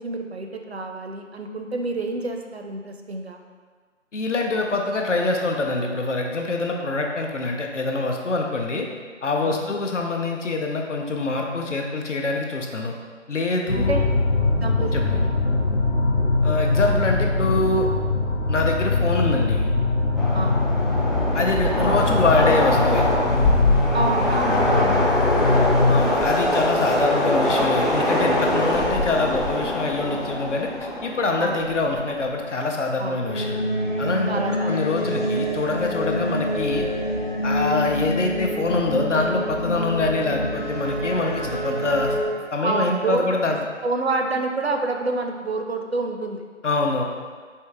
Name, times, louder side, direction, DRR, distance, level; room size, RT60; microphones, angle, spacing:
voice 1, 0.0-3.4 9.4-9.7 13.8-14.0 14.6-15.3 20.3-20.7 23.9-25.8 31.4-31.6 33.0-33.2 34.2-34.9 42.6-43.4 43.8-46.4, right 3 dB, 60° right, 3 dB, 0.5 m, -28 dB
voice 2, 4.1-8.9 9.2-12.9 13.3-14.0 14.9-15.2 16.4-17.9 18.5-19.7 21.3-23.0 25.9-33.5 34.0-36.9 37.4-42.1 42.5-43.6 46.6-47.0, left 3 dB, 70° left, 1 dB, 0.7 m, -24 dB
sound 1, 13.7-26.1, left 3 dB, 90° left, 1.0 m, -22 dB
Train, 20.2-32.4, left 1 dB, ahead, 0.4 m, -23 dB
sound 2, 33.3-42.2, equal, 40° left, 0.6 m, -26 dB
4.5 x 2.8 x 3.4 m, 1.6 s
figure-of-eight pair, 175°, 38 cm